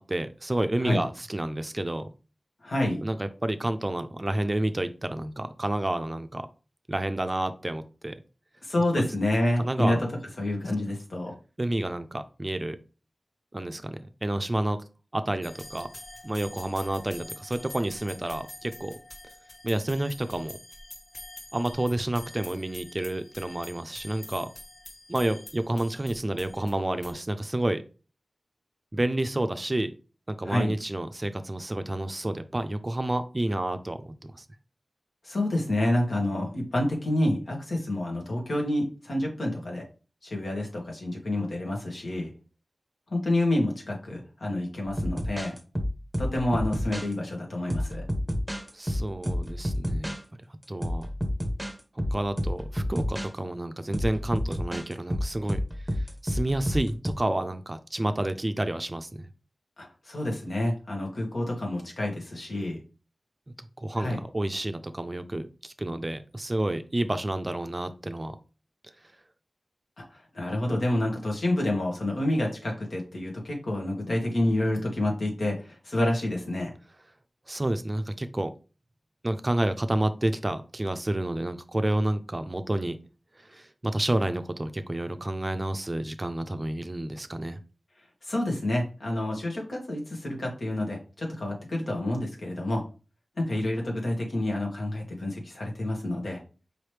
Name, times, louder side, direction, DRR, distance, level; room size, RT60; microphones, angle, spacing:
voice 1, 0.1-2.1 3.0-6.5 6.9-8.1 9.0-9.1 9.6-10.0 11.6-12.8 13.5-14.8 15.1-15.9 16.2-19.0 19.6-20.6 21.5-24.5 25.1-27.8 28.9-29.9 30.3-34.4 48.7-50.1 50.7-51.1 52.1-55.6 56.2-59.3 63.6-68.4 77.5-78.5 79.2-83.0 83.4-87.6, right 1 dB, 30° right, 9 dB, 0.4 m, -29 dB
voice 2, 2.6-3.0 8.6-10.0 10.4-11.3 30.4-30.7 35.2-39.9 40.2-42.3 43.1-45.5 46.2-48.0 59.8-62.8 63.9-64.2 70.0-76.7 88.2-92.8 93.4-96.4, left 1 dB, 75° left, 0 dB, 1.5 m, -28 dB
sound 1, 15.4-27.1, left 1 dB, 50° left, 1.0 m, -46 dB
sound 2, 44.9-47.1 47.7-50.2 50.8-51.7 52.0-53.3 53.9-57.1, equal, 10° right, 0.8 m, -30 dB
4.8 x 3.1 x 3.3 m, 0.34 s
wide cardioid pair, 70°, 0 cm